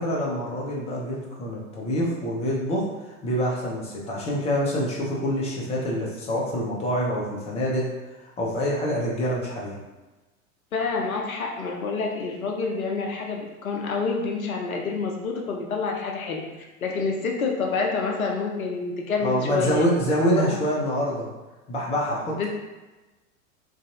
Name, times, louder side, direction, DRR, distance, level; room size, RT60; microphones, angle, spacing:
voice 1, 0.0-7.9 8.2-9.8 19.2-21.3 21.7-22.5, equal, 15° left, -4 dB, 0.5 m, -26 dB
voice 2, 10.7-16.4 16.8-19.9 20.3-20.6 22.4-22.5, left 4 dB, 80° left, 0 dB, 0.6 m, -28 dB
2.5 x 2.3 x 2.6 m, 1.1 s
figure-of-eight pair, 85°, 42 cm